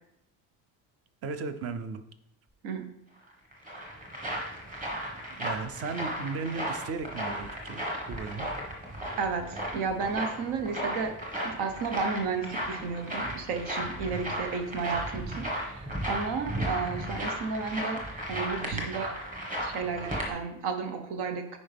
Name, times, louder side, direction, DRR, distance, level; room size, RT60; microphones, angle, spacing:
voice 1, 1.2-2.0 5.4-8.5, right 4 dB, 35° right, 10 dB, 0.5 m, -36 dB
sound 1, 3.3-20.3, equal, 20° right, 1.5 m, -35 dB
voice 2, 9.2-11.2 11.4-18.0 18.3-19.2 19.6-21.6, right 5 dB, 80° right, 6 dB, 1.2 m, -33 dB
9.5 x 5.1 x 3.5 m, 0.79 s
cardioid pair, 175°, 40 cm